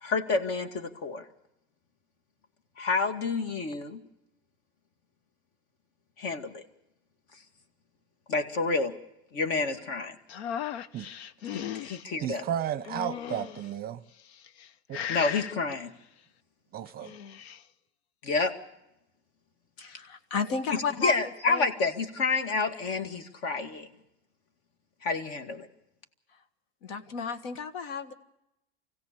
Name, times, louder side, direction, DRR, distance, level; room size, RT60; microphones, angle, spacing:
voice 1, 0.0-1.2 2.8-4.0 6.2-6.6 8.3-8.9 9.3-10.2 11.5-12.4 15.1-15.9 18.2-18.5 21.0-23.9 25.0-25.7, left 4 dB, 50° left, 2.2 m, -29 dB
sound 1, 10.3-12.0 12.8-13.7 14.3-14.7 14.9-15.5 16.9-17.6, left 9 dB, 85° left, 0.8 m, -36 dB
voice 2, 12.2-14.0 14.9-15.0 16.7-17.1, right 10 dB, 30° right, 0.7 m, -33 dB
voice 3, 19.8-21.7 26.8-28.1, left 5 dB, 65° left, 1.7 m, -33 dB
25.0 x 16.5 x 6.9 m
supercardioid pair, 130°, 32 cm